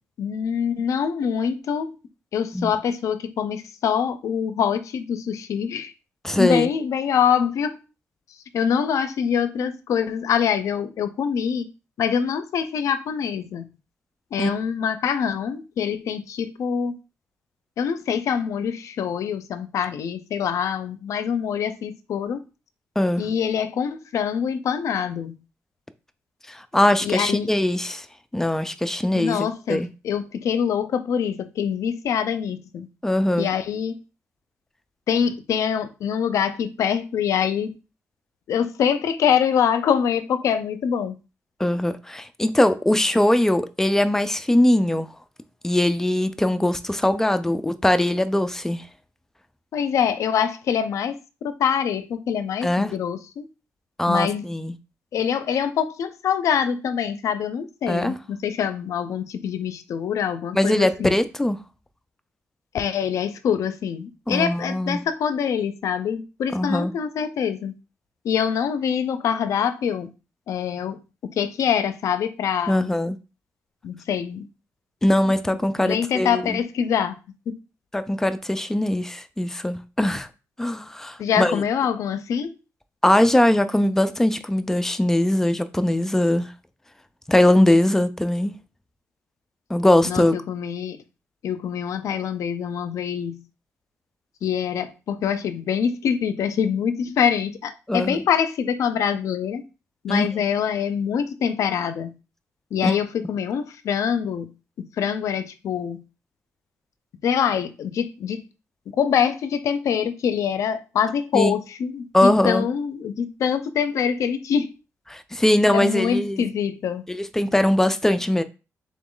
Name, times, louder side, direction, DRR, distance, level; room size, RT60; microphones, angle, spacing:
voice 1, 0.2-2.0 2.3-5.9 6.4-7.8 8.5-11.7 12.0-13.7 14.3-16.9 17.8-22.4 23.2-25.4 27.0-27.5 29.1-32.9 33.4-34.0 35.1-37.7 38.5-41.2 49.7-51.2 51.4-53.5 54.1-54.4 55.1-61.1 62.7-67.7 68.2-70.1 70.5-71.0 71.4-72.9 73.8-74.5 75.2-75.4 75.8-77.2 77.5-77.6 81.2-82.5 90.0-91.0 91.4-93.4 94.4-99.6 100.0-102.1 102.7-104.5 105.0-106.0 107.2-108.4 108.9-114.7 115.7-117.0, left 7 dB, 70° left, 0.5 m, -24 dB
voice 2, 6.2-6.7 14.4-14.5 23.0-23.2 26.5-28.1 28.3-29.9 33.0-33.5 41.6-45.1 45.6-48.8 52.6-52.9 54.0-54.8 57.9-58.2 60.5-61.6 64.3-65.0 66.5-66.9 72.7-73.2 75.0-76.6 77.9-80.3 80.6-81.6 83.0-86.5 87.3-88.5 89.7-90.3 97.9-98.2 100.1-100.3 102.8-103.0 111.3-111.5 112.1-112.7 115.1-116.4 117.1-118.4, left 1 dB, 10° left, 0.3 m, -21 dB
3.8 x 3.0 x 3.7 m
wide cardioid pair, 145°, 6 cm